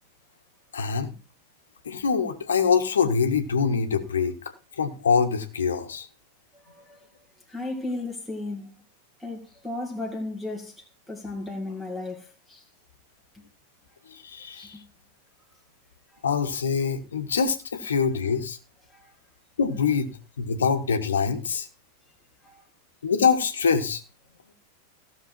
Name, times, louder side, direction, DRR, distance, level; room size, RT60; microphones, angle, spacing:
voice 1, 0.7-1.1 1.8-4.3 4.8-6.1 14.1-14.8 16.2-18.6 19.6-20.1 20.4-21.7 23.0-24.0, left 6 dB, 70° left, 1.5 m, -24 dB
voice 2, 6.6-7.0 7.5-8.7 9.2-12.6 14.5-14.8 18.9-19.1 22.4-22.6, left 2 dB, ahead, 2.1 m, -35 dB
15.5 x 6.6 x 4.5 m
figure-of-eight pair, 90°, 0 cm